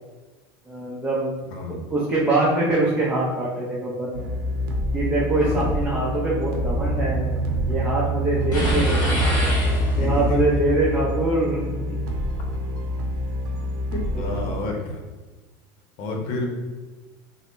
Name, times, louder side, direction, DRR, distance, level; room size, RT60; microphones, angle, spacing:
voice 1, 0.7-1.3 1.7-4.3 4.9-7.3 7.7-9.2 10.0-12.0 14.1-14.7, right 2 dB, 10° right, -7 dB, 0.7 m, -24 dB
voice 2, 1.5-1.8 5.3-5.8 10.0-10.6 13.9-15.1 16.0-16.6, left 2 dB, 60° left, 2 dB, 0.8 m, -30 dB
sound 1, 4.1-14.5, equal, 90° right, 0.7 m, -25 dB
sound 2, 8.5-10.3, equal, 35° left, 1.4 m, -26 dB
3.6 x 2.1 x 3.8 m, 1.3 s
supercardioid pair, 130°, 11 cm